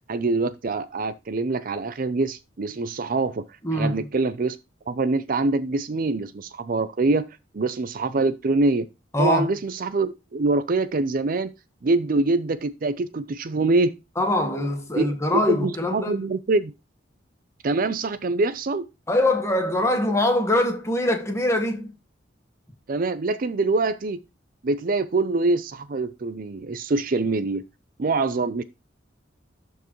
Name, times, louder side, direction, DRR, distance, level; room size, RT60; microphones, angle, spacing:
voice 1, 0.1-3.4 3.7-4.6 4.9-7.3 7.5-8.9 9.2-11.5 11.8-13.9 14.9-15.1 15.5-16.7 17.6-18.9 22.9-24.2 24.6-27.6 28.0-28.6, right 3 dB, 45° right, 0.5 m, -24 dB
voice 2, 3.6-4.1 9.1-9.5 14.2-16.2 19.1-21.9, left 1 dB, 15° left, 1.5 m, -23 dB
12.0 x 4.6 x 3.1 m
head